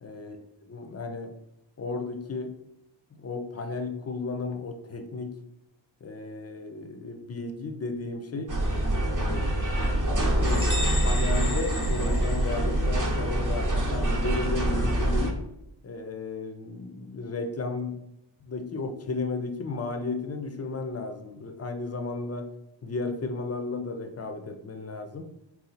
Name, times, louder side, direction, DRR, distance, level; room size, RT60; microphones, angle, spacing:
voice 1, 0.0-0.4 0.6-1.3 1.8-2.5 3.2-5.4 6.0-8.5 9.0-9.9 10.4-10.7 11.0-15.4 15.8-18.0 18.4-22.5 22.8-25.3, left 3 dB, 35° left, 6 dB, 0.5 m, -34 dB
sound 1, 8.5-15.3, right 1 dB, 40° right, 0.8 m, -25 dB
sound 2, 10.4-13.0, left 2 dB, 10° right, 0.9 m, -35 dB
4.1 x 2.4 x 4.0 m, 0.84 s
wide cardioid pair, 85°, 46 cm